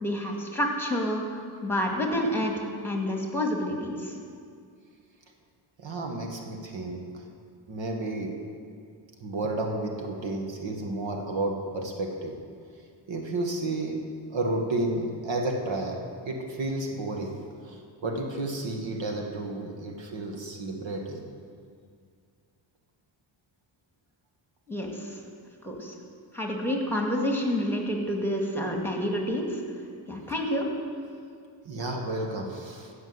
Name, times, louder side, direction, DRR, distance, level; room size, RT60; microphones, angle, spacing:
voice 1, 0.0-1.2 1.6-4.1 24.7-25.2 25.6-26.0 26.3-29.6 30.1-30.7, equal, 5° left, 0 dB, 2.0 m, -28 dB
voice 2, 5.8-7.2 7.7-8.3 9.2-12.4 13.1-14.0 14.3-16.0 16.3-21.3 31.7-32.9, right 2 dB, 70° right, 2 dB, 1.7 m, -32 dB
15.0 x 6.1 x 8.0 m, 2.2 s
cardioid pair, 85°, 47 cm